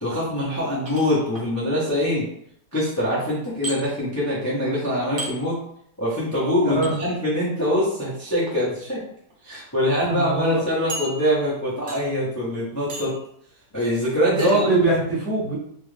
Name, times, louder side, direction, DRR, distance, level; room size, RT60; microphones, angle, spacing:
voice 1, 0.0-2.3 2.7-5.6 6.0-9.0 9.4-13.1 13.7-14.9, left 1 dB, 30° left, -8 dB, 0.3 m, -24 dB
sound 1, 0.9-1.5 3.6-3.8 5.2-5.3 6.8-6.9 8.3-8.5 9.3-9.4 9.7-9.8 10.9-11.5 11.9-12.2 12.9-13.2 14.4-14.6, right 2 dB, 80° right, 0.4 m, -34 dB
voice 2, 6.6-7.0 10.1-10.6 14.3-15.5, right 2 dB, 50° right, -5 dB, 1.1 m, -22 dB
3.0 x 2.4 x 3.2 m, 0.69 s
omnidirectional pair, 1.9 m